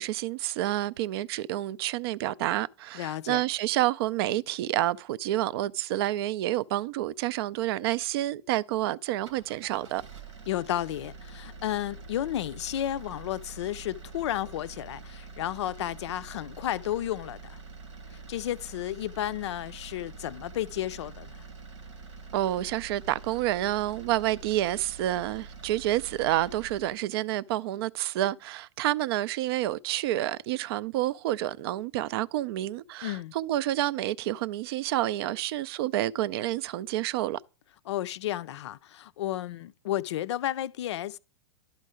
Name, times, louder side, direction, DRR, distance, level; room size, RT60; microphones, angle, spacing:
voice 1, 0.0-10.0 22.3-37.4, right 14 dB, 55° right, 0.4 m, -29 dB
voice 2, 2.9-3.4 10.5-17.6 18.1-21.4 33.0-33.3 37.9-41.2, left 12 dB, 70° left, 0.4 m, -32 dB
sound 1, 9.1-27.0, right 4 dB, 80° right, 1.2 m, -46 dB
11.5 x 4.4 x 4.9 m
hypercardioid pair, 105°, 15 cm